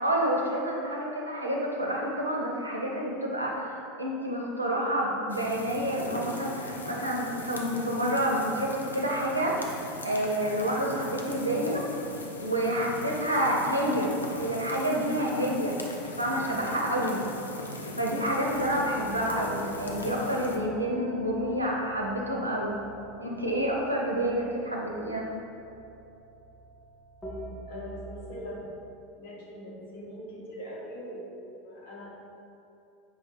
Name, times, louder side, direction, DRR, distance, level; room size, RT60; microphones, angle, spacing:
voice 1, 0.0-9.7 10.0-11.8 12.4-15.7 16.2-17.2 18.0-22.8 23.2-25.3, right 1 dB, 90° right, -2 dB, 0.5 m, -28 dB
sound 1, 5.3-20.6, left 2 dB, 80° left, 0.3 m, -39 dB
voice 2, 17.6-18.0 27.7-28.7 29.2-32.1, equal, 60° left, -5 dB, 0.9 m, -42 dB
sound 2, 18.5-28.5, right 1 dB, 15° left, 0.7 m, -44 dB
5.0 x 2.7 x 2.5 m, 2.7 s
figure-of-eight pair, 80°, 0 cm